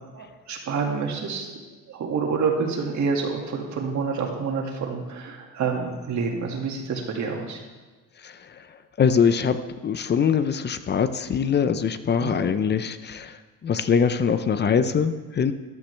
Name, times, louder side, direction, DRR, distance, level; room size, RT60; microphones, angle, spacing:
voice 1, 0.1-1.5 1.9-7.6 12.2-12.5, right 5 dB, 60° right, 1 dB, 2.1 m, -28 dB
voice 2, 9.0-9.6 9.8-13.4 13.6-15.5, left 6 dB, 35° left, 11 dB, 0.5 m, -22 dB
14.0 x 12.0 x 3.3 m, 1.3 s
cardioid pair, 135°, 33 cm